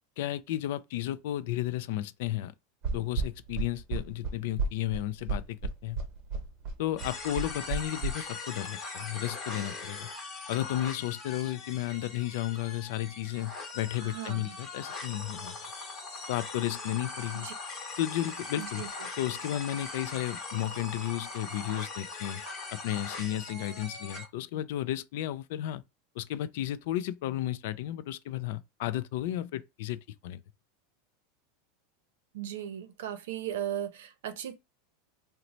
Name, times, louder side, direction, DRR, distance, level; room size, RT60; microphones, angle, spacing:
voice 1, 0.2-2.5 2.9-6.0 6.8-10.1 10.5-15.6 16.3-17.5 18.0-18.8 19.2-22.4 22.7-25.8 26.2-30.4, left 13 dB, 60° left, 0.3 m, -33 dB
sound 1, 2.8-8.1, right 4 dB, 40° right, 1.0 m, -32 dB
sound 2, 7.0-24.3, left 3 dB, 20° left, 0.9 m, -41 dB
voice 2, 14.0-14.6 17.3-17.5 18.6-18.9 32.3-34.5, right 11 dB, 75° right, 0.6 m, -37 dB
3.0 x 2.1 x 3.9 m
supercardioid pair, 170°, 0 cm